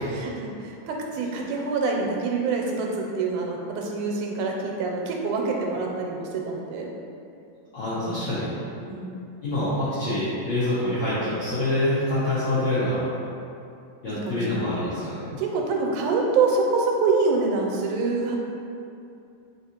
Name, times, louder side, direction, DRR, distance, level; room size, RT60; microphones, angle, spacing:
voice 1, 0.1-6.9 8.9-9.2 14.1-14.6 15.4-18.4, right 4 dB, 90° right, 0 dB, 2.0 m, -26 dB
voice 2, 7.7-8.5 9.4-13.1 14.0-15.4, left 1 dB, 85° left, -13 dB, 1.0 m, -26 dB
4.0 x 3.5 x 2.8 m, 2.6 s
omnidirectional pair, 3.4 m